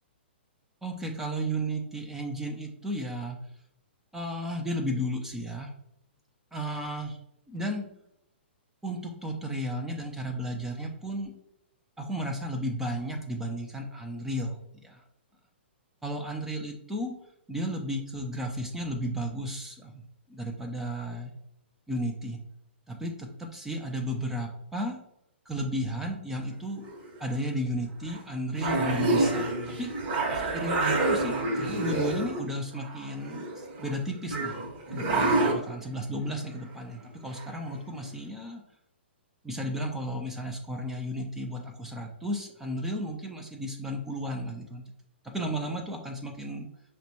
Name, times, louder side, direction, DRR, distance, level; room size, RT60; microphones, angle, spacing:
voice 1, 0.8-3.4 4.1-5.7 6.5-7.2 7.5-7.9 8.8-11.3 12.0-15.0 16.0-17.1 17.5-20.0 20.3-21.3 21.9-22.4 22.9-25.0 25.5-26.8 27.2-29.5 29.8-29.9 30.3-34.5 34.9-38.6 39.4-44.8 45.2-46.7, equal, 5° right, 2 dB, 0.5 m, -33 dB
sound 1, 26.8-27.2 28.1-28.2 28.6-32.4 32.7-34.0 34.3-35.6 37.4-37.5 37.9-38.0, right 2 dB, 40° right, 1.0 m, -28 dB
5.8 x 2.2 x 2.8 m, 0.78 s
figure-of-eight pair, 115°, 6 cm